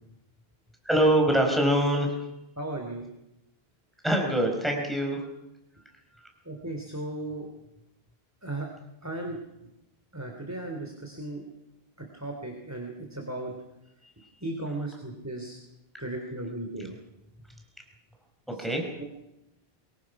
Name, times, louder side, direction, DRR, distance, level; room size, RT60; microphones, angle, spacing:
voice 1, 0.8-2.1 4.0-5.2 18.5-18.9, right 1 dB, ahead, 1 dB, 4.7 m, -24 dB
voice 2, 2.6-3.1 6.4-7.5 8.4-8.7 9.0-9.4 10.1-11.4 12.1-13.5 14.4-15.6 16.0-16.9 18.6-18.7 19.0-19.1, right 2 dB, 15° right, 2 dB, 3.0 m, -36 dB
24.5 x 23.0 x 6.0 m, 0.92 s
omnidirectional pair, 1.0 m